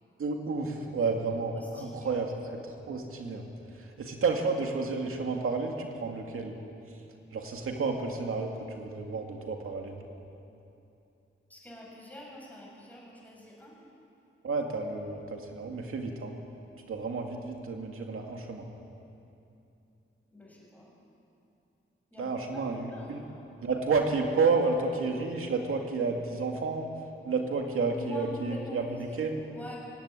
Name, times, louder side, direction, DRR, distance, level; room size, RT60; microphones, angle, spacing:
voice 1, 0.2-3.4 3.7-6.5 7.3-10.0 14.4-16.3 16.8-18.7 22.2-23.2 23.6-26.9 27.2-29.4, right 4 dB, 85° right, 2 dB, 2.3 m, -31 dB
voice 2, 1.6-2.2 11.5-13.8 20.3-20.9 22.1-23.4 27.8-28.8 29.1-29.2 29.5-29.8, equal, 5° left, -4 dB, 6.8 m, -46 dB
23.0 x 17.0 x 9.9 m, 2.8 s
wide cardioid pair, 155°, 21 cm